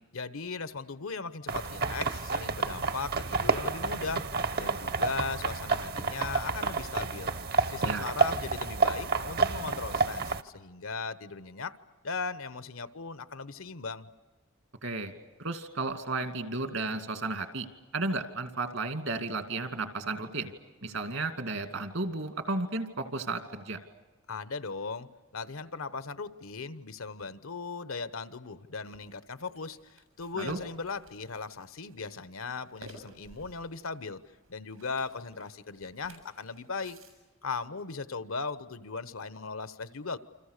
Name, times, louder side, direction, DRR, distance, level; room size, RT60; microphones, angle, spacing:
voice 1, 0.1-7.3 7.7-11.8 12.0-14.1 24.3-34.2 34.5-37.0 37.4-40.2, left 4 dB, 80° left, 14 dB, 1.0 m, -38 dB
sound 1, 1.5-10.4, right 4 dB, 45° right, 0.9 m, -30 dB
voice 2, 14.8-15.1 15.4-17.7 17.9-20.5 20.8-23.8 30.4-30.6, right 3 dB, 70° right, 8 dB, 2.5 m, -33 dB
sound 2, 28.8-37.1, right 2 dB, 90° right, 7.3 m, -54 dB
28.5 x 26.5 x 6.7 m, 1.2 s
head